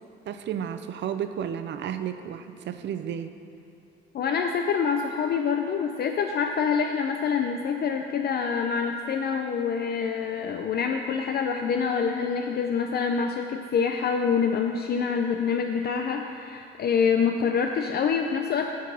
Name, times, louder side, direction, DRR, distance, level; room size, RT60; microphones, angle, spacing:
voice 1, 0.3-3.3, right 9 dB, 65° right, 10 dB, 0.5 m, -32 dB
voice 2, 4.1-18.7, left 6 dB, 55° left, 4 dB, 0.5 m, -26 dB
9.2 x 4.5 x 6.2 m, 2.8 s
cardioid pair, 90°, 20 cm